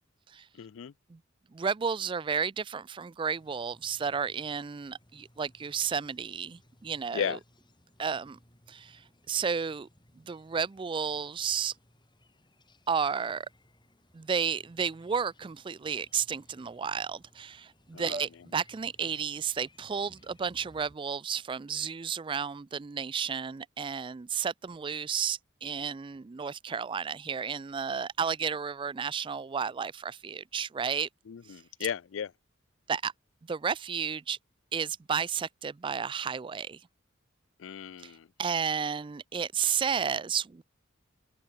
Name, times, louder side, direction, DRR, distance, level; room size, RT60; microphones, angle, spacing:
voice 1, 0.5-0.9 7.1-7.4 17.9-18.2 31.3-32.3 37.6-38.3, left 7 dB, 70° left, 0.4 m, -35 dB
voice 2, 1.5-7.4 8.0-8.4 8.7-9.0 9.3-9.9 10.2-11.7 12.9-13.5 14.1-31.1 32.9-33.1 33.5-34.4 34.7-36.8 38.0-38.1 38.4-40.6, right 6 dB, 25° right, 0.3 m, -32 dB
sound 1, 3.4-21.0, left 1 dB, 20° left, 7.3 m, -63 dB
head